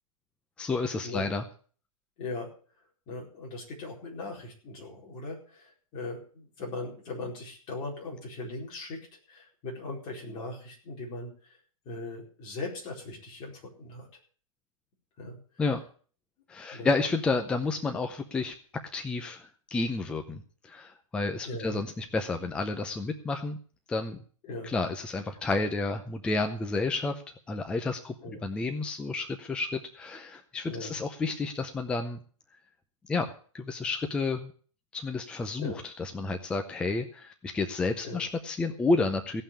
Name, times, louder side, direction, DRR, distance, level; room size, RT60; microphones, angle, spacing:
voice 1, 0.6-1.4 15.6-15.8 16.5-18.5 18.9-23.6 23.9-24.2 24.6-27.2 27.5-28.1 28.4-32.2 33.0-33.3 33.5-34.5 34.9-39.4, left 3 dB, 5° left, 6 dB, 0.6 m, -30 dB
voice 2, 2.2-2.5 3.1-9.0 9.3-11.6 11.8-14.1 15.2-15.4 16.7-16.9 21.4-21.8 24.5-24.7 28.2-28.5 30.7-31.0 35.6-35.8 38.0-38.2, left 2 dB, 25° left, -2 dB, 4.4 m, -39 dB
17.0 x 5.7 x 8.6 m, 0.44 s
hypercardioid pair, 160°, 18 cm